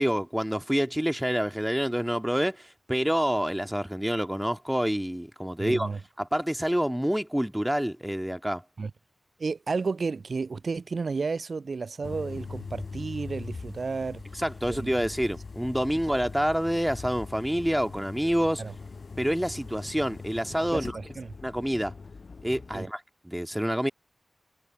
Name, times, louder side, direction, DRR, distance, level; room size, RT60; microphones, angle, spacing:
voice 1, 0.0-8.6 14.3-18.6 19.2-20.9 21.4-21.9 22.4-23.9, equal, 5° right, 0.4 m, -27 dB
voice 2, 5.6-6.0 8.8-8.9 9.4-14.2 14.7-14.9 18.6-18.7 20.7-21.3 22.7-22.9, right 4 dB, 70° right, 0.5 m, -32 dB
sound 1, 12.0-22.8, left 4 dB, 65° left, 1.9 m, -41 dB
cardioid pair, 55°, 0 cm